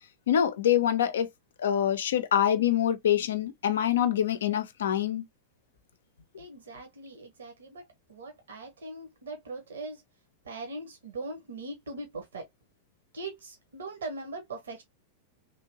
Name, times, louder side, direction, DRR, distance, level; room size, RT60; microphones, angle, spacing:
voice 1, 0.3-1.3 1.6-5.3, left 10 dB, 65° left, 0.5 m, -25 dB
voice 2, 6.4-10.0 10.4-12.5 13.1-14.8, right 2 dB, 65° right, 0.9 m, -40 dB
3.2 x 2.6 x 2.7 m
figure-of-eight pair, 90°, 0 cm